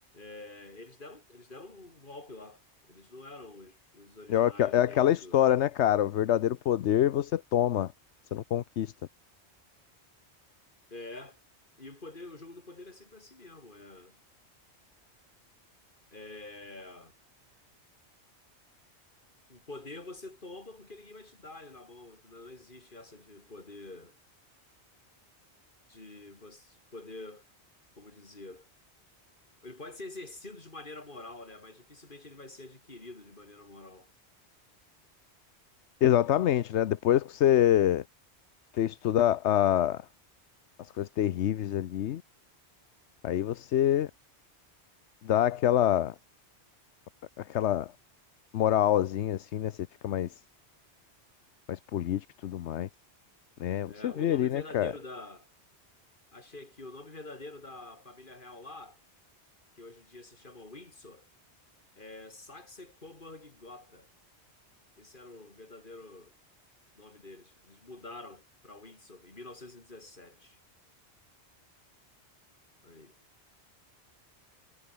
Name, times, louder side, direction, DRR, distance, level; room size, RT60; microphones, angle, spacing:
voice 1, 0.1-2.6 2.9-5.4 10.9-11.4 11.8-14.2 16.1-17.1 19.5-24.2 25.9-27.5 28.0-28.7 29.6-34.1 53.9-55.5 56.3-59.0 59.8-61.3 62.0-64.1 65.0-66.4 67.0-70.6 72.8-73.1, left 2 dB, 45° left, 3.6 m, -47 dB
voice 2, 4.3-7.9 8.3-8.9 36.0-38.0 38.7-40.0 41.0-42.2 43.2-44.1 45.2-46.1 47.4-47.9 48.5-49.7 50.0-50.3 51.7-52.9 53.6-54.9, left 11 dB, 85° left, 1.0 m, -26 dB
omnidirectional pair, 1.2 m